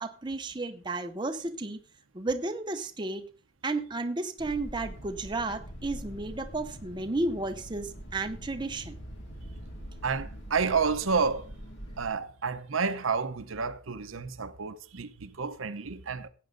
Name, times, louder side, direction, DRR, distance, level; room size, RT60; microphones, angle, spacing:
voice 1, 0.0-1.8 2.1-3.2 3.6-9.0, right 2 dB, 20° right, 0.7 m, -33 dB
sound 1, 4.4-12.1, equal, 65° left, 2.3 m, -44 dB
voice 2, 10.0-11.5 12.0-16.3, right 5 dB, 85° right, 0.9 m, -30 dB
15.5 x 8.5 x 3.9 m
head